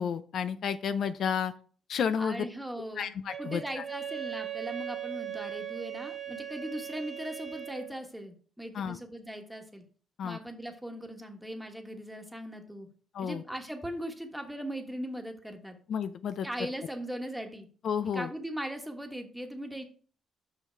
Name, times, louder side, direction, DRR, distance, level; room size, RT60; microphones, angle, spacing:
voice 1, 0.0-1.5 1.9-2.5 3.0-3.8 8.7-9.0 10.2-10.4 13.1-13.4 15.9-16.5 17.8-18.3, left 7 dB, 65° left, 11 dB, 0.5 m, -31 dB
voice 2, 2.2-3.1 3.4-9.8 10.2-12.9 13.2-15.7 16.4-17.7 18.1-19.8, right 1 dB, 5° right, 4 dB, 1.4 m, -39 dB
Wind instrument woodwind instrument, 3.3-7.9, right 10 dB, 25° right, 1.5 m, -39 dB
5.8 x 5.7 x 4.4 m, 0.43 s
cardioid pair, 90°, 0 cm